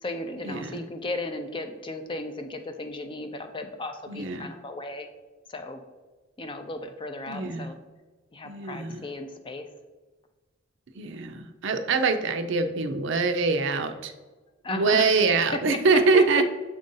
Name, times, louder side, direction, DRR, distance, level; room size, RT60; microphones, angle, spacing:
voice 1, 0.0-5.1 5.5-5.8 6.4-7.8 8.3-9.6 14.6-15.2 15.5-16.2, left 2 dB, 25° left, 6 dB, 0.5 m, -35 dB
voice 2, 4.1-4.5 7.3-7.7 8.4-9.0 11.0-14.1 14.7-16.4, right 4 dB, 65° right, 8 dB, 0.5 m, -24 dB
7.3 x 2.6 x 5.3 m, 1.2 s
head